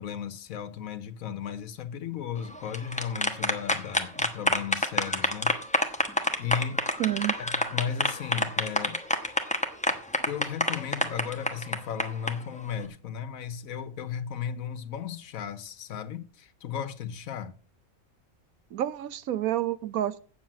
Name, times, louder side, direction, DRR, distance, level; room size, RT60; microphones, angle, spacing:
voice 1, 0.0-5.6 6.4-6.9 7.4-9.0 10.3-17.5, left 8 dB, 75° left, 1.3 m, -35 dB
sound 1, 2.5-12.3, left 1 dB, 5° left, 1.0 m, -27 dB
voice 2, 7.0-7.4 18.7-20.2, right 12 dB, 85° right, 1.2 m, -29 dB
8.3 x 7.5 x 7.5 m
omnidirectional pair, 1.5 m